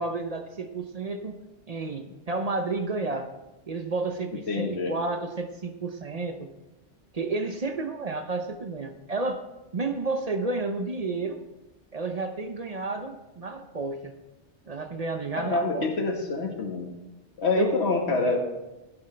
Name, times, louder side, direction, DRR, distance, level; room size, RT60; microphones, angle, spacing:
voice 1, 0.0-1.4 1.7-3.3 3.7-6.5 7.1-9.4 9.7-11.4 11.9-14.1 14.7-15.9 17.6-17.8, right 3 dB, 40° right, 7 dB, 0.8 m, -31 dB
voice 2, 4.5-4.9 15.4-16.9 17.4-18.4, left 3 dB, 65° left, 2 dB, 1.8 m, -26 dB
15.5 x 9.8 x 3.4 m, 1.0 s
omnidirectional pair, 1.2 m